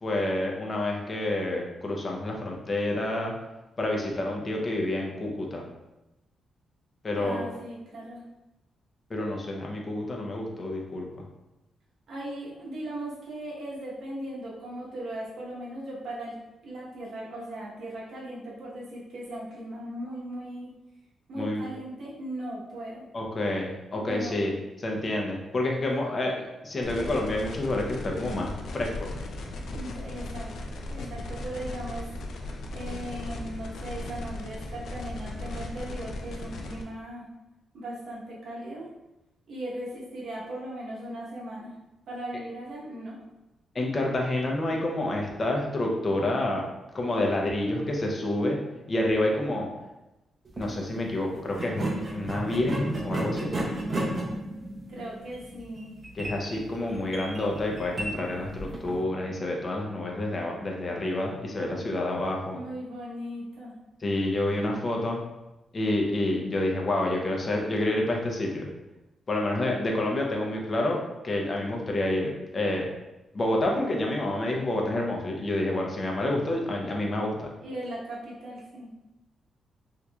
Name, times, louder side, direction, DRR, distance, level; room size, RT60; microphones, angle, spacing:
voice 1, 0.0-3.3 3.8-5.6 7.0-7.4 9.1-11.1 21.4-21.6 23.1-24.5 24.8-29.1 43.7-46.6 46.9-48.6 48.9-49.7 50.6-53.5 56.2-62.6 64.0-65.2 65.7-68.7 69.3-71.0 71.2-72.9 73.3-77.5, left 1 dB, 35° left, 0 dB, 0.7 m, -28 dB
voice 2, 7.2-8.2 12.1-20.7 21.3-23.1 24.0-24.5 29.7-30.5 30.9-32.1 32.7-37.3 37.7-38.9 39.5-41.7 42.1-43.2 43.7-43.8 54.9-56.0 62.5-63.8 77.6-78.9, right 1 dB, 70° right, -4 dB, 1.0 m, -38 dB
sound 1, 26.8-36.8, left 2 dB, 75° left, 0.4 m, -37 dB
sound 2, 50.4-50.7 51.5-59.0, right 1 dB, 35° right, 0.6 m, -33 dB
3.7 x 2.9 x 2.3 m, 0.98 s
cardioid pair, 110°, 0 cm